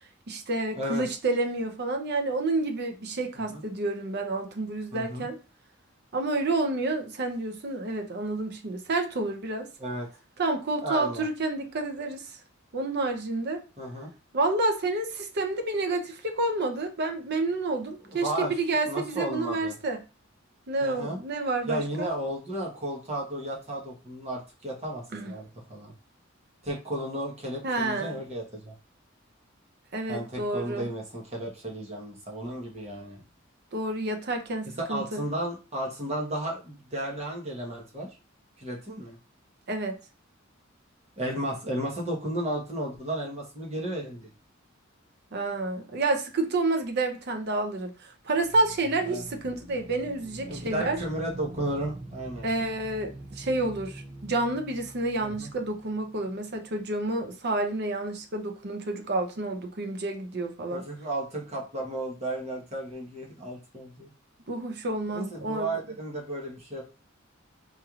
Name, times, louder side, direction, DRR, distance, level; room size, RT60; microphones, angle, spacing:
voice 1, 0.3-5.4 6.1-9.7 10.4-12.4 12.7-13.6 14.3-20.0 20.7-22.1 25.1-25.3 27.6-28.2 29.9-30.9 33.7-35.2 39.7-40.0 45.3-51.0 52.4-60.8 64.5-65.7, right 2 dB, 55° right, 0.7 m, -29 dB
voice 2, 4.9-5.3 9.8-10.1 10.8-11.3 13.8-14.1 18.1-18.5 18.9-19.8 20.8-21.2 21.7-25.9 26.6-28.7 30.1-33.2 34.9-38.1 38.6-39.2 41.2-44.3 49.0-49.2 50.5-52.5 55.2-55.5 60.7-64.1 65.1-66.8, right 1 dB, 30° right, 1.2 m, -33 dB
sound 1, 48.3-57.0, right 1 dB, 15° right, 0.4 m, -44 dB
4.4 x 3.1 x 2.4 m
head